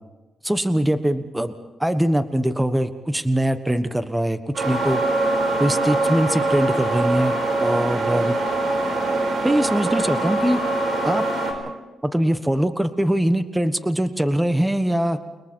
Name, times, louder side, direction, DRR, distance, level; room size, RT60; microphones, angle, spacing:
voice 1, 0.4-1.5 1.8-5.0 5.6-7.3 7.6-8.3 9.4-10.6 11.0-11.3 12.0-15.2, right 1 dB, 10° right, 10 dB, 1.2 m, -22 dB
sound 1, 4.5-11.5, right 2 dB, 65° right, 5.2 m, -23 dB
29.5 x 22.5 x 4.5 m, 1.2 s
cardioid pair, 105°, 0 cm